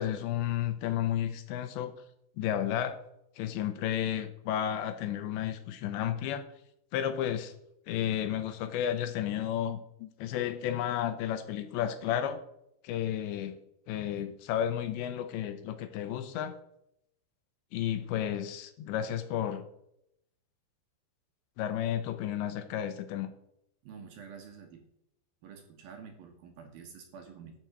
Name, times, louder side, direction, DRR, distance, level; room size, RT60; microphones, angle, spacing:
voice 1, 0.0-1.9 2.4-3.0 3.4-6.4 6.9-7.5 7.9-12.4 12.8-13.6 13.9-16.6 17.7-19.6 21.6-23.3, left 10 dB, 80° left, 10 dB, 3.1 m, -32 dB
voice 2, 23.8-24.8 25.4-27.5, right 6 dB, 65° right, 4 dB, 2.7 m, -48 dB
13.5 x 6.0 x 8.0 m, 0.77 s
omnidirectional pair, 5.3 m